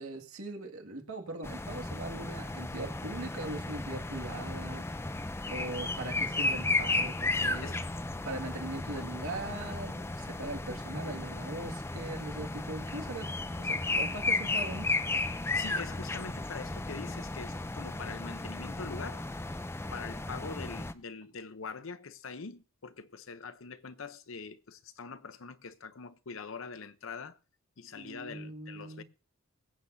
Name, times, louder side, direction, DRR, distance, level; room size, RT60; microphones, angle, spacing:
voice 1, 0.0-4.9 5.5-7.8 8.2-14.9 27.9-29.0, right 2 dB, 75° right, 2.0 m, -40 dB
sound 1, 1.4-20.9, left 2 dB, 10° left, 0.4 m, -34 dB
voice 2, 15.5-19.3 19.9-27.4 27.8-29.0, left 5 dB, 65° left, 0.7 m, -43 dB
22.0 x 8.2 x 2.7 m
head